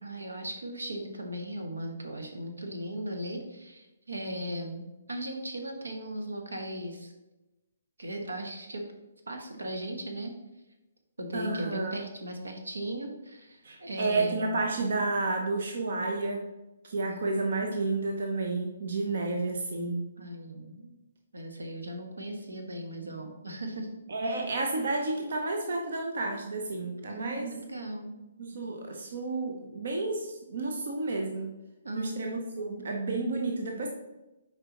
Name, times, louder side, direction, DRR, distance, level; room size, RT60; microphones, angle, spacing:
voice 1, 0.0-7.1 8.0-8.9 9.3-10.3 11.2-14.6 17.1-17.5 20.2-20.9 21.3-23.9 24.3-24.4 27.1-28.1 31.8-32.1 32.6-32.7, right 1 dB, 85° right, 4 dB, 1.1 m, -38 dB
voice 2, 11.3-12.0 13.6-16.4 16.8-20.0 24.1-27.5 28.4-31.5 31.9-33.9, right 3 dB, 60° right, 2 dB, 0.8 m, -31 dB
6.8 x 4.7 x 2.9 m, 1.0 s
figure-of-eight pair, 135°, 0 cm